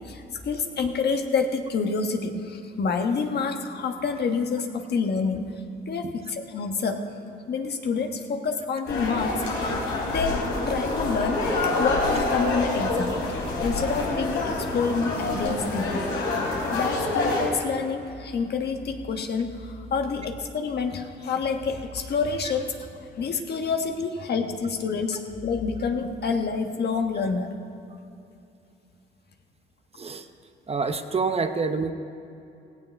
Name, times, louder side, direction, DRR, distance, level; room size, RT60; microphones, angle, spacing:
voice 1, 0.0-5.4 5.9-7.0 7.5-16.1 16.7-27.5, left 5 dB, 55° left, 5 dB, 1.4 m, -28 dB
sound 1, 8.9-17.5, left 2 dB, 85° left, 4.0 m, -27 dB
voice 2, 30.0-30.3 30.7-31.9, right 4 dB, 30° right, 8 dB, 0.8 m, -27 dB
17.0 x 16.5 x 3.5 m, 2.7 s
cardioid pair, 90°, 20 cm